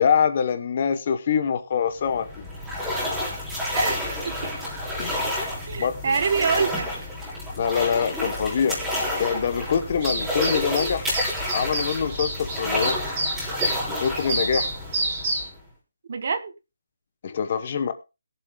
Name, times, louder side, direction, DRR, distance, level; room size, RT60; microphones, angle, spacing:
voice 1, 0.0-2.4 5.0-5.3 5.8-6.2 7.6-8.8 9.1-11.1 11.5-13.0 13.9-14.7 17.2-17.9, left 7 dB, 30° left, 10 dB, 0.9 m, -24 dB
sound 1, 1.9-15.7, left 1 dB, 5° right, 3.5 m, -30 dB
voice 2, 3.7-4.5 5.7-6.9 7.2-7.4 16.1-16.5, right 5 dB, 40° right, 11 dB, 1.0 m, -26 dB
sound 2, 10.0-15.5, right 2 dB, 20° right, 3.1 m, -29 dB
21.0 x 7.5 x 2.2 m, 0.28 s
hypercardioid pair, 175°, 0 cm